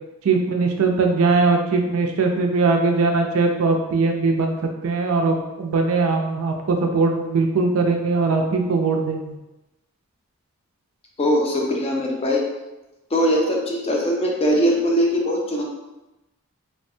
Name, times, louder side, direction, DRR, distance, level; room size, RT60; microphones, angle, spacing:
voice 1, 0.2-4.5 4.8-9.4, right 3 dB, 65° right, 3 dB, 0.4 m, -20 dB
voice 2, 11.2-12.4 13.1-15.6, equal, 25° left, -1 dB, 0.4 m, -21 dB
3.2 x 2.1 x 2.6 m, 1.0 s
head